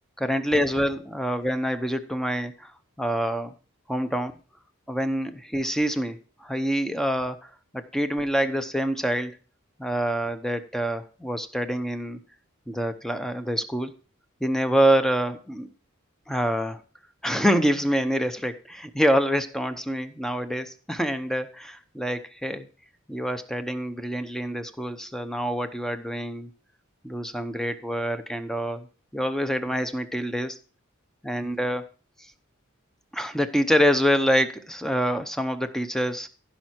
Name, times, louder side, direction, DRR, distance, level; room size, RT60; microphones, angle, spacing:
voice 1, 0.2-2.7 3.0-3.5 3.9-4.3 4.9-9.4 9.8-12.2 12.7-13.9 14.4-15.7 16.3-16.8 17.2-22.7 23.1-26.5 27.0-28.9 29.1-30.6 31.2-31.8 33.1-36.3, equal, ahead, 9 dB, 0.8 m, -26 dB
15.5 x 5.8 x 4.5 m, 0.37 s
head